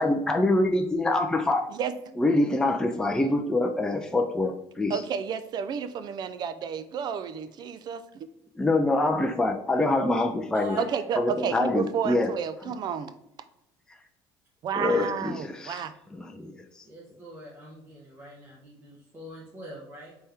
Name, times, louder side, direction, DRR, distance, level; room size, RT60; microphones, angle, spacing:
voice 1, 0.0-1.6 2.2-5.0 8.6-10.8 11.2-12.3 12.6-12.7 14.7-15.8 16.1-16.8, left 2 dB, 5° left, 4 dB, 0.4 m, -25 dB
voice 2, 1.7-2.2 4.9-8.3 10.8-13.1 14.6-15.9, right 7 dB, 45° right, 12 dB, 0.5 m, -31 dB
voice 3, 10.5-11.7 16.8-20.1, equal, 20° right, -5 dB, 1.3 m, -44 dB
4.2 x 3.5 x 3.5 m, 0.84 s
supercardioid pair, 100°, 10 cm